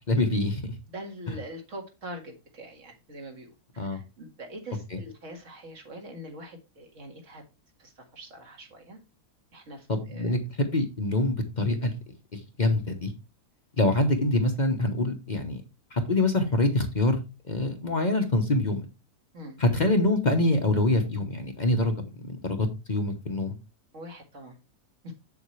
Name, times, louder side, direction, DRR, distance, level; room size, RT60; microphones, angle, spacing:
voice 1, 0.1-0.8 1.3-1.4 3.8-4.0 4.9-5.0 9.9-12.0 12.3-13.1 13.8-15.6 15.9-18.8 19.6-21.9 22.2-23.6, left 2 dB, 30° left, 5 dB, 1.0 m, -25 dB
voice 2, 0.9-7.4 7.8-9.0 9.5-10.4 19.3-19.6 23.9-24.6, right 1 dB, 50° right, 3 dB, 2.2 m, -43 dB
7.9 x 7.1 x 3.2 m, 0.27 s
omnidirectional pair, 1.7 m